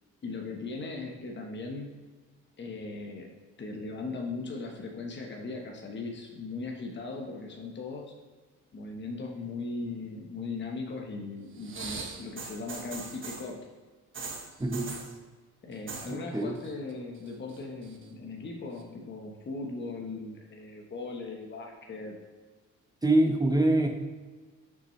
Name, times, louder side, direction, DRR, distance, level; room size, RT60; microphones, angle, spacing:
voice 1, 0.2-1.9 2.6-3.3 3.6-8.1 8.7-13.7 15.6-22.2, left 3 dB, 35° left, 1 dB, 1.1 m, -38 dB
sound 1, 11.6-13.5 14.1-15.1 15.7-16.1 16.4-16.9 17.3-18.0 18.8-18.9, right 4 dB, 40° right, 1.1 m, -40 dB
voice 2, 14.6-14.9 16.3-16.6 23.0-23.9, right 1 dB, 15° right, 4 dB, 0.8 m, -24 dB
6.1 x 6.0 x 3.1 m, 1.4 s
cardioid pair, 90°, 30 cm